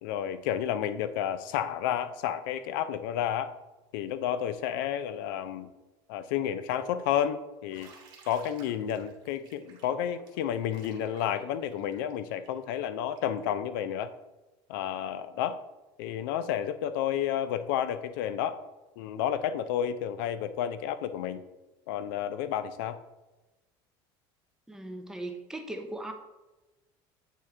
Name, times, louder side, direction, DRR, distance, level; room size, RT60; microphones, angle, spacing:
voice 1, 0.0-3.5 3.9-5.7 6.1-7.9 8.3-14.1 14.7-15.6 16.0-18.6 19.0-21.4 21.9-23.0, left 10 dB, 90° left, 13 dB, 0.4 m, -31 dB
Bathtub (filling or washing), 7.7-13.4, right 5 dB, 40° right, 1.4 m, -56 dB
voice 2, 24.7-26.1, right 1 dB, 5° right, 4 dB, 0.5 m, -38 dB
8.2 x 3.6 x 3.2 m, 1.1 s
cardioid pair, 145°, 11 cm